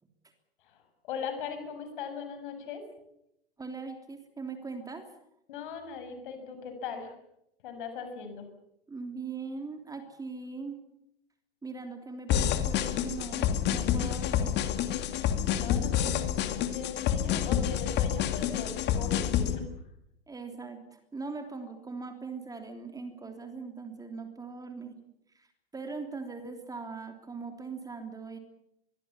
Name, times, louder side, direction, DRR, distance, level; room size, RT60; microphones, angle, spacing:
voice 1, 0.7-2.8 5.5-7.1 7.6-8.5 15.5-19.7, left 6 dB, 55° left, 8 dB, 6.9 m, -39 dB
voice 2, 3.6-5.1 8.9-10.8 11.6-14.6 16.0-16.1 20.3-24.9 25.3-25.5 25.7-28.4, right 4 dB, 10° right, 6 dB, 3.3 m, -40 dB
sound 1, 12.3-19.6, left 10 dB, 35° left, 2.4 m, -28 dB
24.5 x 22.5 x 7.2 m, 0.81 s
figure-of-eight pair, 90°, 30 cm